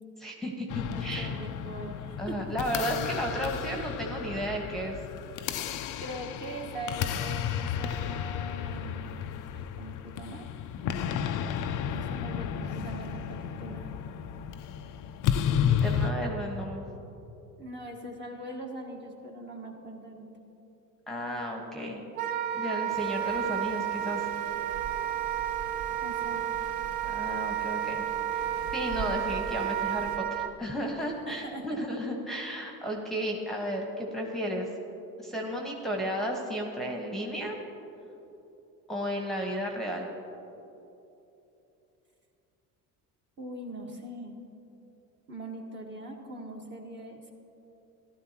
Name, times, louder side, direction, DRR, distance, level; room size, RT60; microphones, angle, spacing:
voice 1, 0.2-1.3 2.2-5.0 15.4-16.8 21.1-22.0 22.5-24.3 27.0-28.0 28.3-28.5 28.7-34.7 35.2-37.6 38.9-40.1, equal, ahead, 0 dB, 1.4 m, -33 dB
sound 1, 0.7-16.1, left 8 dB, 50° left, 0.6 m, -32 dB
voice 2, 0.9-2.4 6.0-9.2 9.5-10.4 11.9-13.9 17.6-20.3 26.0-26.4 31.3-31.8 43.4-44.4 45.3-47.3, right 1 dB, 25° right, 0 dB, 1.6 m, -41 dB
Wind instrument woodwind instrument, 22.2-30.5, right 11 dB, 90° right, 0.5 m, -31 dB
sound 2, 22.9-30.2, right 4 dB, 45° right, 0.8 m, -44 dB
14.0 x 12.0 x 3.0 m, 2.9 s
hypercardioid pair, 65°, 42 cm